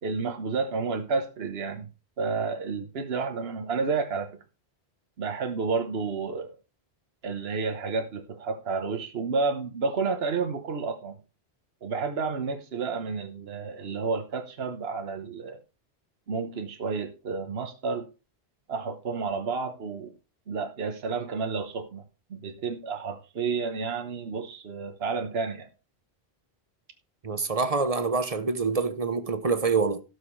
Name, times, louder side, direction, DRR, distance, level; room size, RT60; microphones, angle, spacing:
voice 1, 0.0-1.9 2.2-4.3 5.2-6.5 7.2-11.2 11.8-15.6 16.3-18.1 18.7-20.1 20.5-22.0 22.3-25.7, right 4 dB, 70° right, 1.3 m, -30 dB
voice 2, 27.2-30.0, right 4 dB, 35° right, 0.9 m, -26 dB
17.0 x 6.3 x 3.2 m
omnidirectional pair, 1.1 m